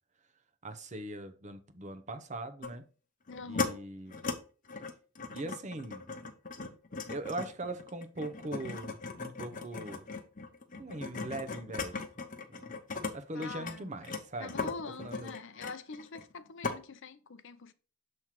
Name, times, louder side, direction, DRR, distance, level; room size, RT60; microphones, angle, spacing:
voice 1, 0.6-2.8 3.5-4.1 5.3-6.0 7.1-10.1 10.8-12.1 12.5-12.8 13.1-14.7 15.0-15.3, right 2 dB, 35° right, 0.7 m, -41 dB
sound 1, 2.6-2.8 3.3-3.7 4.1-4.4 4.7-13.1 13.4-16.3 16.6-16.8, left 4 dB, 35° left, 0.9 m, -38 dB
voice 2, 3.3-3.8 13.3-13.9 14.4-17.7, left 4 dB, 55° left, 0.6 m, -44 dB
7.2 x 3.2 x 5.8 m
head